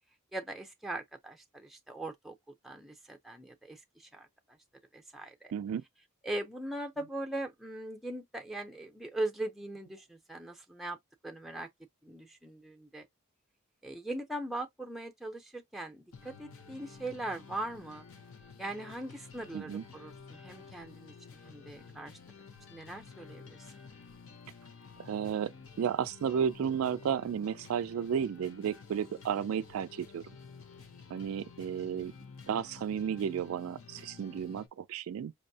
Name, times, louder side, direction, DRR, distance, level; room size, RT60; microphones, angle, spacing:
voice 1, 0.3-2.3 2.6-4.3 4.9-5.5 6.2-11.0 11.2-11.7 12.0-13.1 13.8-18.1 18.6-22.2 22.7-23.9, right 1 dB, ahead, 0.4 m, -40 dB
voice 2, 5.5-5.8 19.5-19.8 25.0-25.5 25.8-30.4 31.1-32.1 32.5-35.3, right 8 dB, 70° right, 0.3 m, -33 dB
sound 1, 16.1-34.7, left 5 dB, 65° left, 0.7 m, -52 dB
5.2 x 2.0 x 2.7 m
head